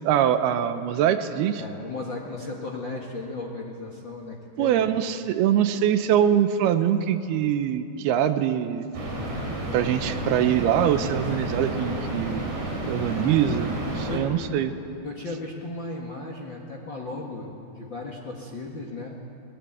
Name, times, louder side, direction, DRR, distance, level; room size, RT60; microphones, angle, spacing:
voice 1, 0.0-1.6 4.6-8.9 9.7-12.5 12.9-14.7, right 10 dB, 80° right, 10 dB, 2.7 m, -23 dB
voice 2, 1.5-4.9 13.1-13.4 14.1-14.3 15.0-19.1, left 2 dB, 45° left, 0 dB, 1.6 m, -36 dB
sound 1, 8.9-14.2, right 1 dB, 50° right, 5.2 m, -31 dB
21.0 x 20.0 x 9.2 m, 2.7 s
omnidirectional pair, 4.6 m